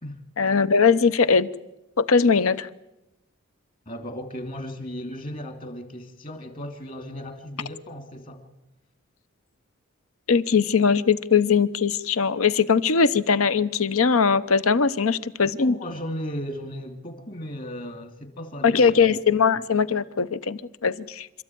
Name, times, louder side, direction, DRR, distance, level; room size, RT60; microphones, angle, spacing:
voice 1, 0.4-1.5 2.0-2.7 10.3-15.8 18.6-21.4, left 5 dB, 80° left, 0.8 m, -20 dB
voice 2, 3.9-8.5 15.4-19.0, equal, 40° left, 2.7 m, -36 dB
27.5 x 13.5 x 9.3 m
head